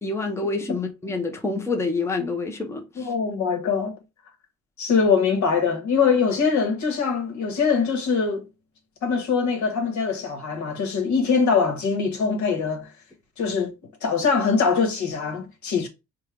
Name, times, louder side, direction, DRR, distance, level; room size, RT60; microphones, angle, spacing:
voice 1, 0.0-3.1, left 3 dB, 10° left, 0.6 m, -27 dB
voice 2, 3.0-3.9 4.8-8.5 9.0-12.9 13.4-13.7 14.0-15.9, left 5 dB, 70° left, 1.2 m, -23 dB
4.5 x 2.2 x 3.3 m
cardioid pair, 90°, 30 cm